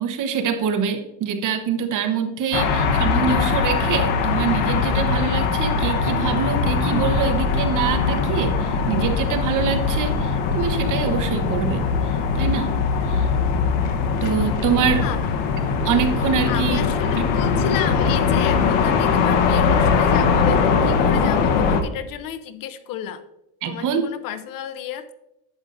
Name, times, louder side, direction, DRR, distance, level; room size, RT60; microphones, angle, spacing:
voice 1, 0.0-11.8 12.3-12.7 13.1-13.3 14.2-15.0 15.8-16.8 23.6-24.0, right 7 dB, 45° right, 6 dB, 1.0 m, -24 dB
sound 1, 2.5-21.8, left 5 dB, 75° left, 1.1 m, -21 dB
voice 2, 16.5-23.2 23.6-25.1, left 9 dB, 50° left, 12 dB, 0.7 m, -32 dB
11.0 x 7.9 x 2.6 m, 0.86 s
cardioid pair, 125°, 44 cm